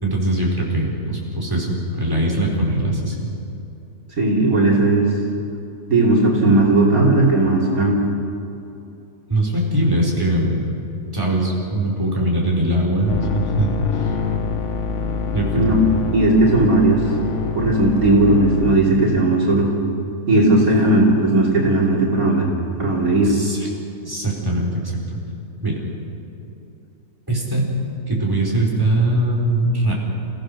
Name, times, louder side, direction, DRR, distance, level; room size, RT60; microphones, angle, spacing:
voice 1, 0.0-3.3 9.3-10.7 11.1-14.2 15.3-15.8 23.2-23.7 24.0-24.8 25.1-25.2 25.6-25.8 27.3-27.7 28.1-29.9, right 1 dB, 15° right, -4 dB, 4.2 m, -21 dB
voice 2, 4.2-5.1 5.9-8.0 15.5-15.8 16.1-17.0 17.5-19.7 20.3-22.5 22.8-23.3, right 2 dB, 60° right, -3 dB, 3.4 m, -16 dB
sound 1, 13.1-18.8, left 5 dB, 55° left, 1.3 m, -26 dB
29.0 x 16.5 x 6.4 m, 2.8 s
omnidirectional pair, 1.7 m